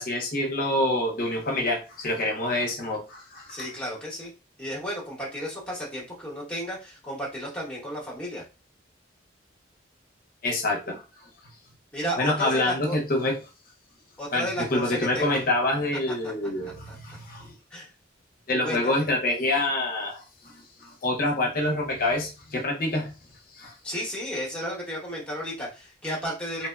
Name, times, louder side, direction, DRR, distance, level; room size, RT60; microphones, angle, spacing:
voice 1, 0.0-3.6 10.4-11.0 12.2-13.4 14.3-14.5 14.7-17.5 18.5-20.5 20.8-23.1 23.6-23.7 26.6-26.7, left 1 dB, 45° left, 1 dB, 0.6 m, -26 dB
voice 2, 3.5-4.3 4.6-8.4 11.9-13.0 14.2-15.4 16.2-16.3 16.6-17.0 17.7-17.9 18.6-19.1 23.8-26.7, equal, 5° left, -5 dB, 0.9 m, -33 dB
2.9 x 2.1 x 2.2 m, 0.30 s
head